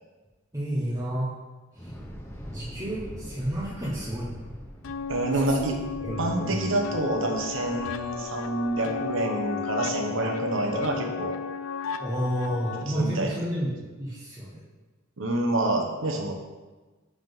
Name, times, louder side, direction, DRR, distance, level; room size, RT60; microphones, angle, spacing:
voice 1, 0.5-1.3 1.8-1.9 2.5-4.3 5.5-6.7 12.0-13.7 14.0-14.6, right 1 dB, 15° right, -8 dB, 0.9 m, -30 dB
Thunder / Explosion, 1.7-9.9, equal, 10° left, 0.7 m, -44 dB
sound 1, 4.8-12.8, left 6 dB, 80° left, 0.4 m, -34 dB
voice 2, 5.1-5.8 6.2-11.4 12.9-13.3 15.2-16.3, right 2 dB, 70° right, 2 dB, 0.9 m, -27 dB
5.6 x 3.7 x 5.3 m, 1.3 s
head